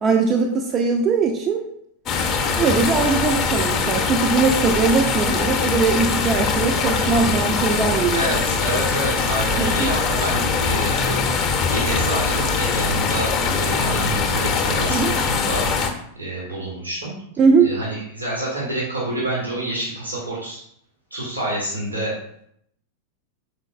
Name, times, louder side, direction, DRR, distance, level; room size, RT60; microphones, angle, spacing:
voice 1, 0.0-1.6 2.5-8.3 9.6-9.9 14.9-15.1 17.4-17.7, right 5 dB, 30° right, 2 dB, 0.5 m, -20 dB
sound 1, 2.1-15.9, left 5 dB, 30° left, 0.6 m, -22 dB
voice 2, 8.1-11.2 11.7-15.6 16.1-17.1 17.6-20.6 21.1-22.2, right 1 dB, 85° right, -5 dB, 1.4 m, -27 dB
5.5 x 3.7 x 2.5 m, 0.70 s
figure-of-eight pair, 90°, 0 cm